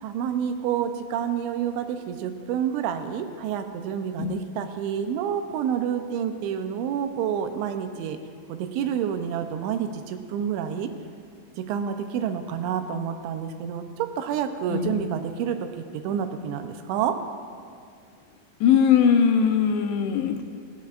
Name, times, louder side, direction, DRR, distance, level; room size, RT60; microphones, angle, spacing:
voice 1, 0.0-8.2 8.5-10.9 11.6-17.1, right 8 dB, 90° right, 7 dB, 3.1 m, -28 dB
voice 2, 14.7-15.1 18.6-20.4, left 7 dB, 80° left, 5 dB, 2.6 m, -20 dB
17.5 x 15.5 x 2.5 m, 2.3 s
omnidirectional pair, 5.1 m